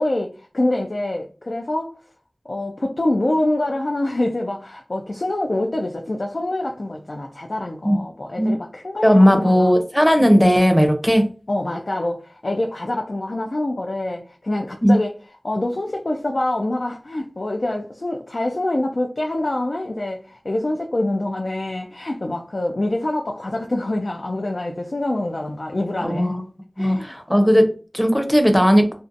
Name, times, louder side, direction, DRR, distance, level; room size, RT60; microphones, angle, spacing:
voice 1, 0.0-2.0 2.5-9.7 10.2-10.3 11.5-15.1 15.4-26.3 26.8-27.6, left 1 dB, 70° left, 0.3 m, -25 dB
voice 2, 9.0-11.2 14.8-14.9 26.0-26.4 26.8-27.7 27.9-28.9, equal, 10° left, 0.6 m, -16 dB
2.6 x 2.1 x 2.5 m
wide cardioid pair, 40°, 0 cm